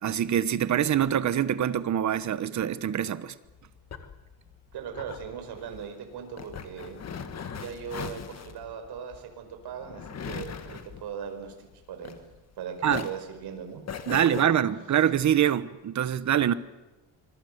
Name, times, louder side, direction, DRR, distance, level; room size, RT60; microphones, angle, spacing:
voice 1, 0.0-3.3 12.8-13.1 14.1-16.5, right 10 dB, 40° right, 1.1 m, -25 dB
sound 1, 3.4-12.5 12.8-14.5, left 7 dB, 35° left, 1.7 m, -40 dB
voice 2, 4.7-7.0 7.5-12.2 12.6-13.8 14.1-14.6, right 7 dB, 55° right, 5.1 m, -39 dB
26.0 x 21.5 x 8.1 m
cardioid pair, 155°, 46 cm